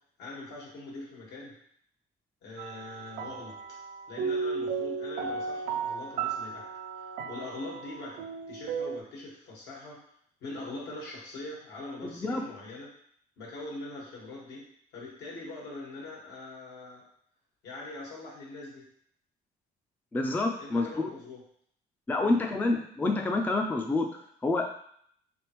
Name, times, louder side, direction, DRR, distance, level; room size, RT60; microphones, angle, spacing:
voice 1, 0.2-1.5 2.4-3.6 4.1-6.7 7.0-8.2 8.5-10.0 10.4-12.9 13.4-14.6 14.9-17.0 17.6-18.8 20.6-21.4 22.2-22.4, left 2 dB, 80° left, -4 dB, 1.6 m, -42 dB
sound 1, 2.6-9.0, right 5 dB, 70° right, 0.4 m, -35 dB
voice 2, 12.0-12.4 20.1-21.1 22.1-24.7, left 2 dB, 10° left, 3 dB, 0.4 m, -28 dB
3.4 x 3.4 x 3.0 m, 0.65 s
cardioid pair, 110°, 17 cm